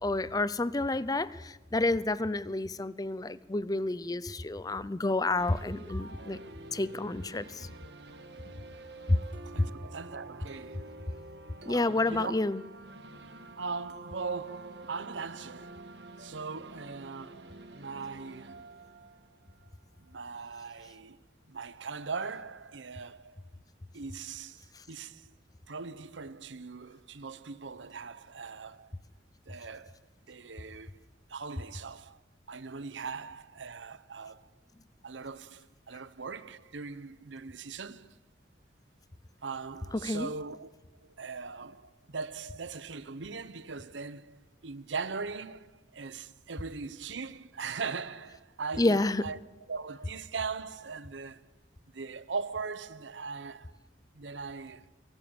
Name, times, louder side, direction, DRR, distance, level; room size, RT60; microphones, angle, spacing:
voice 1, 0.0-6.4 6.7-7.7 9.1-9.2 9.6-9.7 11.7-12.6 24.7-24.8 39.9-40.3 48.8-49.2, left 2 dB, 20° left, 0.6 m, -29 dB
sound 1, 5.4-20.2, right 2 dB, 65° right, 1.7 m, -48 dB
voice 2, 9.5-11.0 11.7-12.4 13.3-15.9 16.2-18.7 20.0-21.2 21.5-23.4 23.9-25.3 25.7-28.9 29.5-30.0 30.3-31.0 31.3-32.2 32.5-34.5 35.0-38.2 39.4-40.7 41.0-49.4 49.7-51.4 51.9-53.7 54.1-54.9, right 4 dB, 85° right, 0.9 m, -40 dB
23.5 x 18.0 x 7.1 m
head